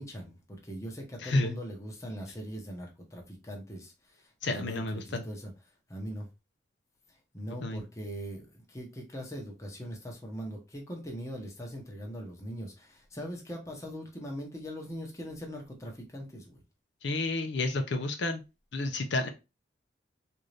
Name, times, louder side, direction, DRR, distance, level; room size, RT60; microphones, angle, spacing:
voice 1, 0.0-5.5 5.9-6.3 7.1-16.6, equal, 15° left, 0.9 m, -41 dB
voice 2, 1.2-1.5 4.4-5.2 7.6-7.8 17.0-18.4 18.7-19.3, left 2 dB, 70° left, 0.6 m, -30 dB
3.8 x 2.6 x 3.2 m
head